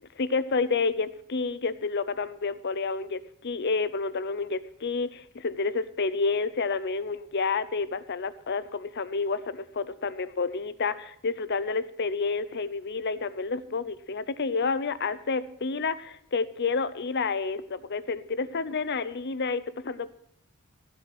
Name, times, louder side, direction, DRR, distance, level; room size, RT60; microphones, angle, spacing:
voice 1, 0.2-20.1, left 4 dB, 50° left, 14 dB, 0.7 m, -29 dB
16.0 x 7.8 x 6.1 m, 0.68 s
head